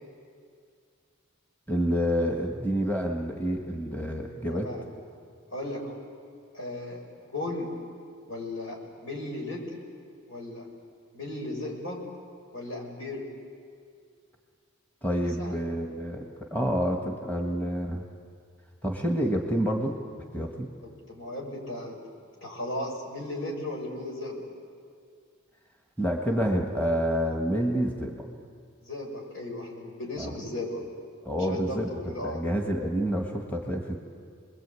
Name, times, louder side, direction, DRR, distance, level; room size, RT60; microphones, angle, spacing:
voice 1, 1.7-4.7 15.0-18.0 18.8-19.9 20.3-20.7 26.0-28.2 30.2-30.3 31.2-34.0, equal, 10° left, 1 dB, 1.6 m, -28 dB
voice 2, 4.5-4.8 5.5-6.0 6.5-7.0 7.3-7.7 8.3-9.8 10.3-10.7 11.1-12.0 12.5-13.2 15.4-15.6 20.8-22.0 22.4-24.5 28.8-30.8 31.4-32.4, left 1 dB, 80° left, -1 dB, 6.5 m, -36 dB
28.5 x 21.5 x 8.5 m, 2.3 s
head